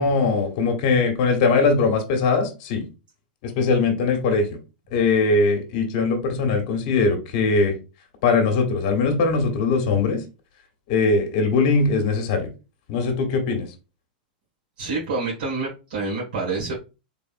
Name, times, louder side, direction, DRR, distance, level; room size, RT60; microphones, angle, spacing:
voice 1, 0.0-2.8 3.4-4.6 4.9-7.7 8.2-10.2 10.9-12.5 12.9-13.7, left 4 dB, 55° left, 1.3 m, -21 dB
voice 2, 14.8-16.7, right 3 dB, 70° right, 1.8 m, -27 dB
3.8 x 3.4 x 2.6 m
supercardioid pair, 145°, 5 cm